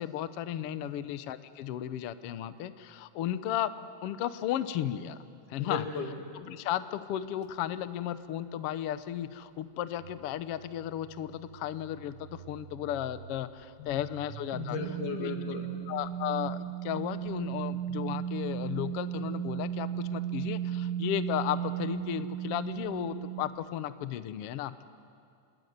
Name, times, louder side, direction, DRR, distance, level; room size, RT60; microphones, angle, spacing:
voice 1, 0.0-3.7 4.0-5.2 5.5-5.8 6.3-14.8 15.2-15.3 15.9-24.7, left 11 dB, 70° left, 12 dB, 1.5 m, -34 dB
voice 2, 5.6-6.1 13.8-14.1 14.5-15.7, left 5 dB, 85° left, 4 dB, 3.8 m, -36 dB
sound 1, 10.0-13.4 13.9-23.4, right 10 dB, 75° right, 0.9 m, -37 dB
27.5 x 21.5 x 9.5 m, 2.4 s
omnidirectional pair, 3.5 m